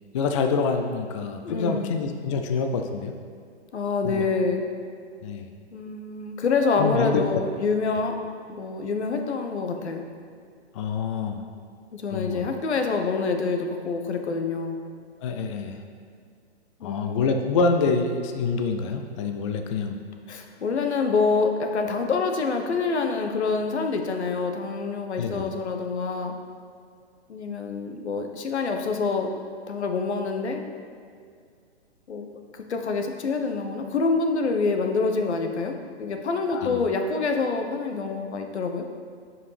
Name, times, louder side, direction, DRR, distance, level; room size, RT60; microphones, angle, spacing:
voice 1, 0.1-3.1 4.0-4.3 5.2-5.5 6.8-7.2 10.7-11.5 12.1-12.5 15.2-15.8 16.8-20.0 25.2-25.5 36.5-36.9, left 4 dB, 30° left, 5 dB, 0.3 m, -26 dB
voice 2, 1.4-2.0 3.7-4.6 5.7-8.2 8.5-10.0 11.9-14.8 16.8-17.3 20.3-26.3 27.3-29.4 29.7-30.6 32.1-32.3 32.5-38.8, left 4 dB, 75° left, 5 dB, 1.0 m, -26 dB
10.5 x 4.9 x 3.3 m, 2.2 s
hypercardioid pair, 130°, 33 cm